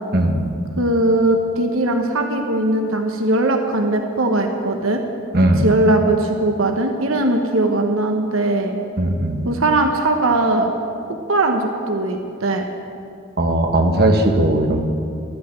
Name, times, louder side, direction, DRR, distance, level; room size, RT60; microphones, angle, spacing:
voice 1, 0.1-0.5 5.3-5.7 9.0-9.5 13.4-14.8, right 1 dB, 50° right, 3 dB, 1.5 m, -17 dB
voice 2, 0.8-5.0 5.6-8.8 9.4-10.7 11.3-12.6, right 2 dB, 90° right, 4 dB, 1.1 m, -19 dB
13.0 x 9.3 x 8.9 m, 2.4 s
head